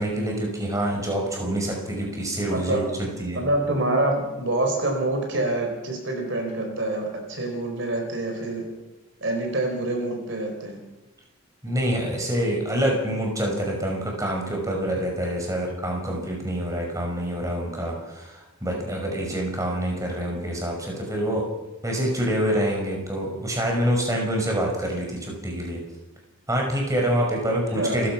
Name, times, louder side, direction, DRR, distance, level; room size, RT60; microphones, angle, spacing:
voice 1, 0.0-3.4 11.6-21.5 21.8-25.8 26.5-28.1, right 1 dB, 15° right, 0 dB, 5.6 m, -26 dB
voice 2, 2.5-2.8 3.3-8.7 9.2-10.8 27.5-28.1, right 2 dB, 55° right, 3 dB, 4.8 m, -26 dB
30.0 x 16.0 x 6.1 m, 1.0 s
head